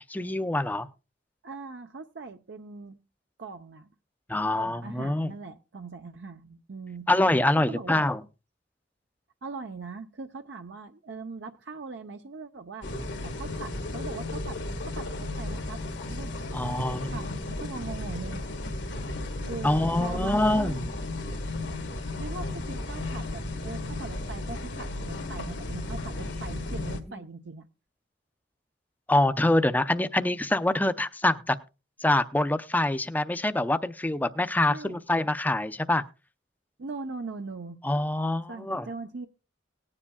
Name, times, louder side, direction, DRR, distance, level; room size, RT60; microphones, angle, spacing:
voice 1, 0.1-0.9 4.3-5.3 7.1-8.2 16.5-17.2 19.6-20.9 29.1-31.6 32.0-36.0 37.8-38.9, left 1 dB, 10° left, 11 dB, 0.5 m, -25 dB
voice 2, 1.4-3.0 3.4-3.9 4.6-7.1 7.6-8.1 9.4-12.9 13.2-15.8 16.1-16.8 17.1-18.5 19.5-20.8 22.2-27.7 34.7-35.0 36.8-37.8 38.5-39.3, right 4 dB, 70° right, 7 dB, 0.7 m, -41 dB
sound 1, 12.8-27.0, left 2 dB, 70° left, 1.5 m, -34 dB
18.5 x 9.8 x 2.3 m, 0.30 s
head